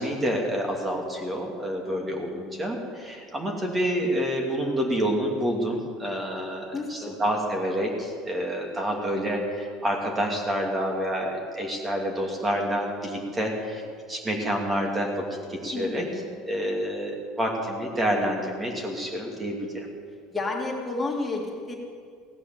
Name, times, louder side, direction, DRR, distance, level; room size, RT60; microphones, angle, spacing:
voice 1, 0.0-13.8 14.1-15.2 15.5-16.0 16.5-17.1 17.4-19.9, equal, 20° right, 1 dB, 2.7 m, -28 dB
voice 2, 1.9-2.3 6.7-7.2 15.7-16.4 20.3-21.8, left 3 dB, 20° left, -1 dB, 2.6 m, -32 dB
17.0 x 9.7 x 7.7 m, 2.1 s
supercardioid pair, 110°, 0 cm